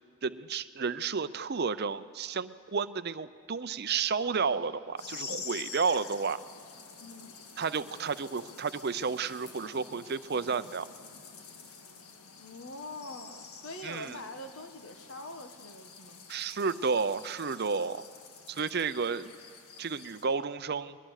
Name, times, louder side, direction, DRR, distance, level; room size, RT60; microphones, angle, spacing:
voice 1, 0.2-6.4 7.6-10.9 13.8-14.2 16.3-18.1 18.5-19.3 19.8-21.0, right 5 dB, 45° right, 13 dB, 0.6 m, -31 dB
sound 1, 5.0-20.2, left 5 dB, 90° left, 1.8 m, -48 dB
voice 2, 7.0-7.3 12.4-16.2, left 2 dB, 60° left, 6 dB, 1.4 m, -44 dB
21.5 x 20.5 x 6.5 m, 2.3 s
head